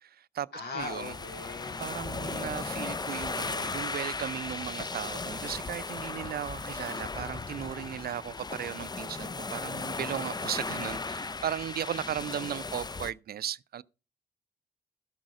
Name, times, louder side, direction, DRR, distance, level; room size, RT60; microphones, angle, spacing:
voice 1, 0.0-0.5 0.7-1.1 1.8-13.8, right 10 dB, 70° right, 0.4 m, -36 dB
voice 2, 0.5-1.8, left 3 dB, 80° left, 3.1 m, -39 dB
sound 1, 0.8-13.1, left 3 dB, 25° left, 0.5 m, -36 dB
12.5 x 6.3 x 4.8 m
cardioid pair, 50°, 17 cm